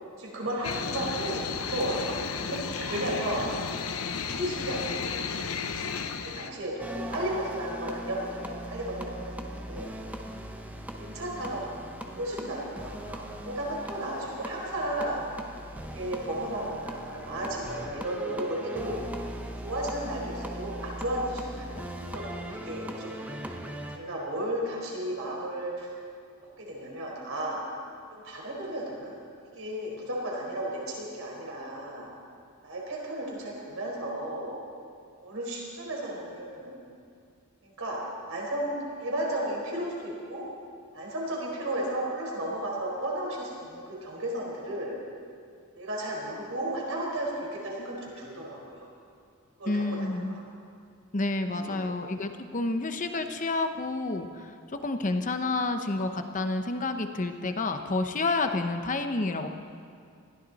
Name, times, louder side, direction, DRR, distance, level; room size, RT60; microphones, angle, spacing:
voice 1, 0.2-3.5 4.3-5.4 6.3-9.9 11.0-11.6 12.1-15.2 15.9-19.0 19.6-23.1 23.9-25.9 26.6-27.6 28.1-29.1 29.5-32.1 32.6-34.6 35.2-36.8 37.6-38.0 38.3-40.4 40.9-45.0 45.8-48.9 49.6-50.4 51.5-51.9, right 1 dB, 65° right, -3 dB, 4.6 m, -34 dB
sound 1, 0.6-6.5, left 5 dB, 85° left, 0.9 m, -33 dB
sound 2, 6.8-24.0, right 1 dB, 5° right, 1.0 m, -39 dB
voice 2, 49.7-50.4 51.1-54.5 54.8-59.5, left 2 dB, 35° left, 7 dB, 0.9 m, -29 dB
21.0 x 15.0 x 4.2 m, 2.3 s
head